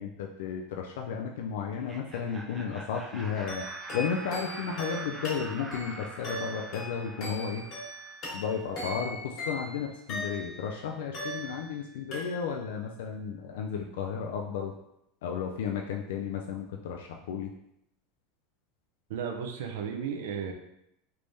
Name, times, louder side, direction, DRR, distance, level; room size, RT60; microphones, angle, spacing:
voice 1, 0.0-3.6 3.9-7.7 8.3-14.7 15.2-17.5, left 6 dB, 85° left, 1 dB, 0.3 m, -33 dB
Laughter, 1.7-8.5, right 1 dB, 10° right, 0.4 m, -45 dB
sound 1, 3.5-10.7 11.1-11.8 12.1-12.7, equal, 40° left, 1.4 m, -39 dB
voice 2, 19.1-20.5, right 7 dB, 80° right, 3 dB, 0.6 m, -34 dB
3.4 x 3.3 x 2.6 m, 0.80 s
supercardioid pair, 160°, 0 cm